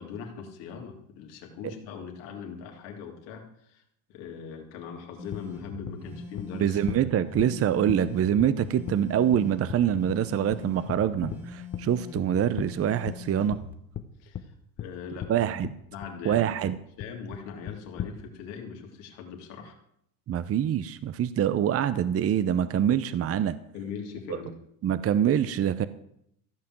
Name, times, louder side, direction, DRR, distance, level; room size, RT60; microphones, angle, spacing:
voice 1, 0.0-3.8 4.1-6.8 14.2-14.5 14.8-15.3 15.9-16.7 17.0-19.8 23.7-24.6, left 6 dB, 80° left, 2 dB, 3.0 m, -40 dB
sound 1, 5.2-13.7, left 3 dB, 5° right, 2.1 m, -42 dB
sound 2, 5.3-5.4 5.9-6.0 6.4-6.5 6.9-7.0 7.4-7.5 7.9-8.0 8.4-8.5 8.9-9.0 9.3-9.4 9.7-9.8 10.1-10.2 10.5-10.6 10.9-11.4 11.7-11.8 12.2-12.3 12.6-12.7 13.1-13.2 13.5-13.6 13.9-14.0 14.3-14.4 14.8-14.9 15.2-15.3 15.6-16.4 16.7-16.8 17.0-17.4 17.7-18.1, left 10 dB, 40° left, 1.0 m, -35 dB
voice 2, 6.5-13.6 15.3-15.7 16.2-16.8 20.3-23.6 24.8-25.9, right 10 dB, 35° right, 14 dB, 0.7 m, -25 dB
14.5 x 5.8 x 7.6 m, 0.73 s
supercardioid pair, 95°, 41 cm